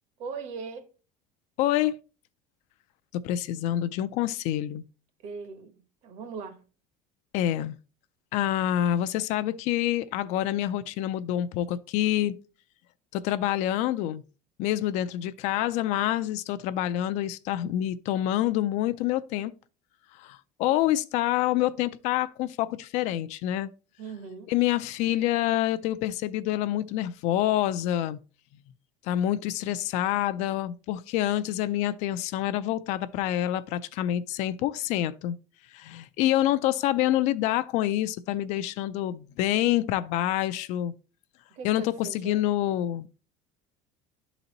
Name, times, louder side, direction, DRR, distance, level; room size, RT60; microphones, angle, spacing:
voice 1, 0.2-0.9 5.2-6.6 24.0-24.5 41.5-42.5, right 5 dB, 50° right, 1.0 m, -40 dB
voice 2, 1.6-2.0 3.1-4.8 7.3-7.8 8.3-12.4 13.1-14.2 14.6-19.5 20.1-23.7 24.5-28.2 29.0-35.4 35.7-40.9 41.6-43.1, left 13 dB, 50° left, 0.4 m, -27 dB
11.5 x 3.9 x 2.9 m
cardioid pair, 175°, 15 cm